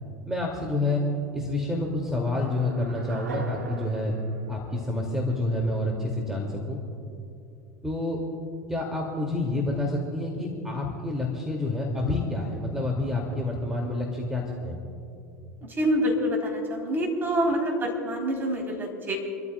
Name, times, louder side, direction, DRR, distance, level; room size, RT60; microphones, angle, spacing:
voice 1, 0.3-1.0 1.3-4.1 4.5-6.8 7.8-8.2 8.7-14.8, left 2 dB, 5° right, -1 dB, 2.5 m, -28 dB
sound 1, 2.4-5.5, right 3 dB, 85° right, 1.1 m, -41 dB
voice 2, 15.8-19.2, equal, 25° right, 0 dB, 3.8 m, -26 dB
29.5 x 13.5 x 2.3 m, 2.6 s
figure-of-eight pair, 80°, 9 cm